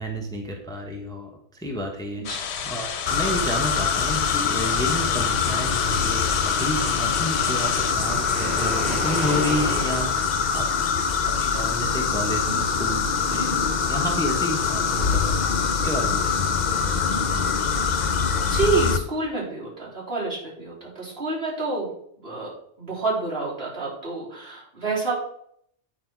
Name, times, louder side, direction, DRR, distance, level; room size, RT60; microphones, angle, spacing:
voice 1, 0.0-10.6 11.2-15.3 15.8-16.4, equal, 5° left, 1 dB, 1.0 m, -31 dB
sound 1, 2.2-7.9, left 7 dB, 70° left, 1.0 m, -32 dB
sound 2, 3.1-19.0, left 6 dB, 45° left, 0.7 m, -24 dB
Waves surf, 7.3-10.8, equal, 45° right, 2.6 m, -32 dB
voice 2, 18.5-21.9 22.2-22.5 22.8-25.1, right 3 dB, 60° right, -6 dB, 3.7 m, -28 dB
8.7 x 6.1 x 4.6 m, 0.69 s
omnidirectional pair, 1.2 m